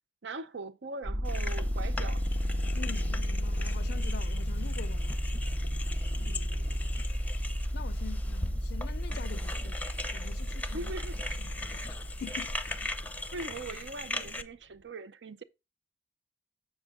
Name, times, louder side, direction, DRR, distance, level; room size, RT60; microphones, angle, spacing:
voice 1, 0.2-2.2 6.2-6.9 10.7-11.2 13.3-15.4, right 3 dB, 85° right, 0.7 m, -41 dB
sound 1, 1.0-13.7, equal, 65° right, 1.3 m, -33 dB
sound 2, 1.2-14.4, left 2 dB, 10° left, 0.6 m, -40 dB
voice 2, 2.7-5.2 7.7-9.8 10.1-10.9 11.4-12.6, left 6 dB, 65° left, 0.4 m, -45 dB
7.4 x 6.6 x 3.6 m
head